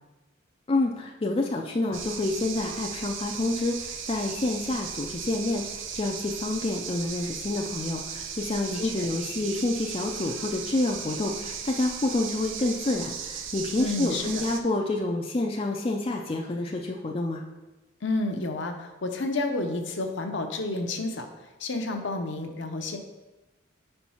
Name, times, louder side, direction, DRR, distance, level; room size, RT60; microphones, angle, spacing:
voice 1, 0.7-17.4, left 2 dB, 30° left, 1 dB, 0.4 m, -28 dB
sound 1, 1.9-14.6, right 7 dB, 70° right, 0.6 m, -37 dB
voice 2, 8.7-9.1 13.8-14.4 18.0-21.3 21.6-23.0, left 2 dB, 60° left, 4 dB, 0.7 m, -30 dB
5.2 x 4.4 x 5.5 m, 1.1 s
head